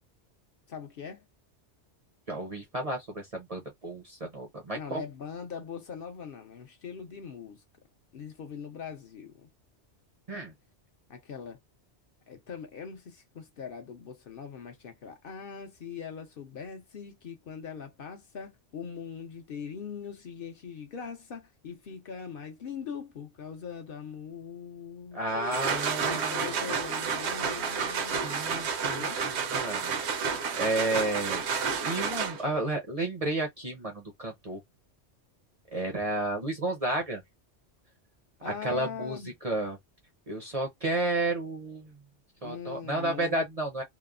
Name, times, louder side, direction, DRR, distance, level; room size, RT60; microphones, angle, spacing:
voice 1, 0.7-1.2 4.7-7.6 8.1-9.5 11.1-11.6 12.3-25.2 26.1-28.2 28.9-29.2 38.4-39.3 42.4-43.4, left 6 dB, 60° left, 0.7 m, -41 dB
voice 2, 2.3-5.0 10.3-10.5 25.1-26.7 28.0-29.9 30.6-31.4 31.8-34.6 35.7-37.2 38.4-39.8 40.3-41.9 42.4-43.8, right 2 dB, 45° right, 0.5 m, -32 dB
sound 1, 25.3-32.6, right 6 dB, 75° right, 0.9 m, -30 dB
2.9 x 2.0 x 2.3 m
omnidirectional pair, 1.2 m